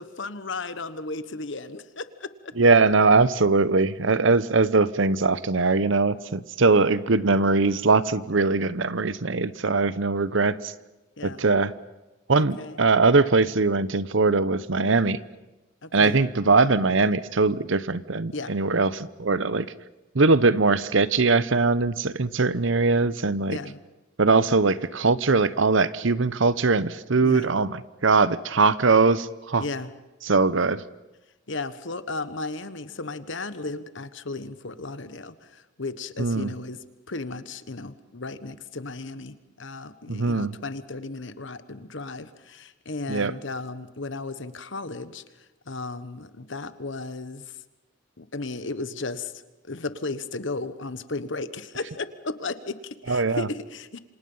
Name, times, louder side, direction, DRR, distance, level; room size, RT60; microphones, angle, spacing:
voice 1, 0.0-2.5 11.2-11.4 12.3-12.8 15.8-16.2 18.3-18.5 23.5-23.8 27.2-27.5 29.6-29.9 31.5-45.2 45.7-47.6 48.2-54.0, left 3 dB, 65° left, 12 dB, 1.3 m, -35 dB
voice 2, 2.6-10.7 11.2-11.7 12.3-15.2 15.9-19.7 20.1-23.6 24.2-29.6 30.3-30.8 36.2-36.5 40.1-40.6 43.1-43.3 53.1-53.5, right 3 dB, 70° right, 16 dB, 0.8 m, -21 dB
28.0 x 26.0 x 5.6 m, 1.0 s
head